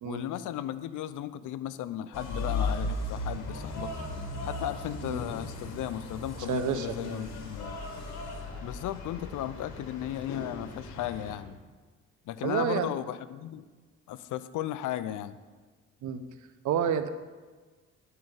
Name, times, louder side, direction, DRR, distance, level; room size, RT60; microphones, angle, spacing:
voice 1, 0.0-4.0 4.4-7.8 8.6-11.6 12.3-13.6 14.1-15.4, left 12 dB, 80° left, 14 dB, 0.6 m, -35 dB
sound 1, 2.1-11.4, left 2 dB, 65° left, 2.2 m, -37 dB
voice 2, 6.5-7.2 12.4-12.9 16.0-16.2 16.6-17.1, right 8 dB, 75° right, 10 dB, 0.9 m, -29 dB
11.0 x 5.6 x 7.8 m, 1.4 s
cardioid pair, 90°, 30 cm